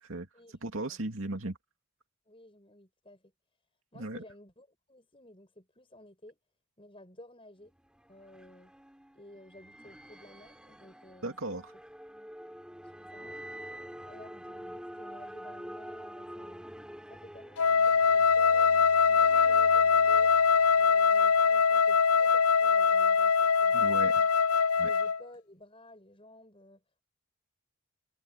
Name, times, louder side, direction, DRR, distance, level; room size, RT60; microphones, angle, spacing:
voice 1, 0.0-1.6 3.9-4.2 11.2-11.7 23.7-24.2 24.8-24.9, right 2 dB, 65° right, 2.5 m, -37 dB
voice 2, 2.3-3.2 3.9-6.4 6.8-7.7 8.1-8.7 9.1-11.6 12.8-13.4 13.7-16.6 17.1-20.3 20.8-24.3 24.8-26.8, left 1 dB, 25° left, 7.0 m, -54 dB
sound 1, 7.7-21.4, equal, 5° right, 5.7 m, -47 dB
Wind instrument woodwind instrument, 17.6-25.2, left 5 dB, 80° left, 0.5 m, -23 dB
head